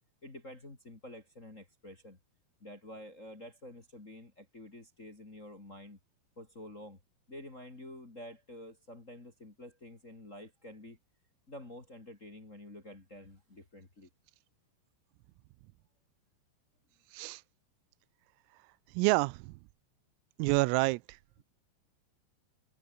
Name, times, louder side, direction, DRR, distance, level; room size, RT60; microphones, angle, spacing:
voice 1, 0.2-2.2 2.6-6.0 6.4-7.0 7.3-11.0 11.5-14.1, left 1 dB, 20° left, 2.3 m, -49 dB
voice 2, 19.0-19.4 20.4-21.0, right 24 dB, 90° right, 3.3 m, -27 dB
omnidirectional pair, 5.9 m